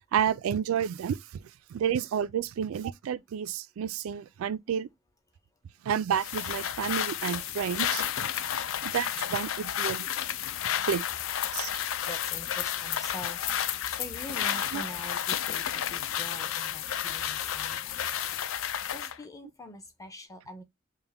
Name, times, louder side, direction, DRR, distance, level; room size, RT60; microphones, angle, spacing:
voice 1, 0.1-1.4 1.7-4.9 5.8-8.3 8.8-10.1 10.8-11.0 11.5-11.7 14.7-14.8, right 8 dB, 85° right, 0.3 m, -30 dB
sound 1, 6.2-19.2, left 10 dB, 70° left, 0.4 m, -31 dB
voice 2, 12.0-13.4 13.9-18.0 18.9-20.6, left 1 dB, 15° left, 0.6 m, -44 dB
5.4 x 2.1 x 3.4 m
head